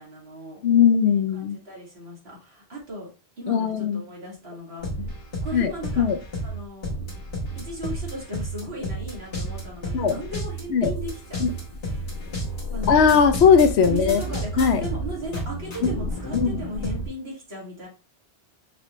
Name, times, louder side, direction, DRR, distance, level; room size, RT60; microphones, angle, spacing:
voice 1, 0.0-0.6 1.1-3.1 3.4-4.9 5.4-6.1 6.4-7.0 7.6-11.6 12.7-13.2 13.8-17.9, right 1 dB, 70° right, -5 dB, 2.4 m, -36 dB
voice 2, 0.6-1.6 3.5-4.0 5.0-5.1 5.5-6.2 9.9-10.2 10.7-10.9 11.4-11.5 12.9-14.2 14.6-14.8 15.8-15.9 16.3-16.6, left 7 dB, 80° left, 9 dB, 0.9 m, -19 dB
sound 1, 4.8-17.1, right 1 dB, 65° left, 1.7 m, -31 dB
5.8 x 2.7 x 3.0 m, 0.34 s
omnidirectional pair, 1.1 m